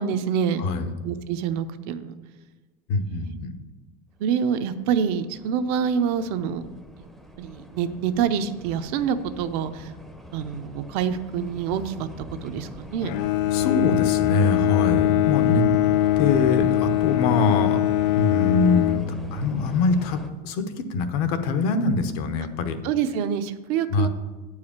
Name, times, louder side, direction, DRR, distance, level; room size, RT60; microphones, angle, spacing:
voice 1, 0.0-0.6 1.0-2.1 3.1-3.3 4.2-6.7 7.4-9.9 10.3-12.1 12.4-13.1 22.8-24.1, right 7 dB, 65° right, 9 dB, 0.7 m, -26 dB
voice 2, 2.9-3.6 13.5-15.7 16.2-17.9 18.2-19.0 19.3-22.8 23.9-24.1, left 3 dB, 70° left, 8 dB, 1.0 m, -24 dB
sound 1, 4.4-20.3, equal, ahead, 0.6 m, -42 dB
Bowed string instrument, 13.0-19.7, left 14 dB, 85° left, 0.4 m, -22 dB
8.8 x 4.8 x 7.2 m, 1.3 s
cardioid pair, 160°, 21 cm